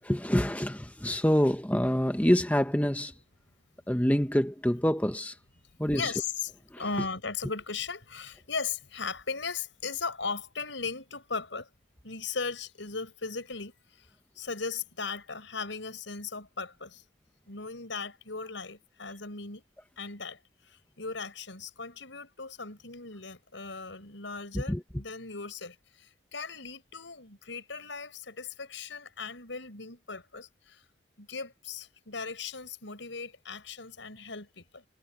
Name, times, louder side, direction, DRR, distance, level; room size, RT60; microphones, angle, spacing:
voice 1, 0.1-3.1 3.9-5.4 5.8-6.1 6.7-6.8 24.5-24.8, equal, 10° left, 1.0 m, -26 dB
voice 2, 5.9-6.5 6.8-11.7 12.0-17.0 17.5-19.6 20.0-30.8 31.2-34.9, left 4 dB, 90° left, 5.9 m, -38 dB
head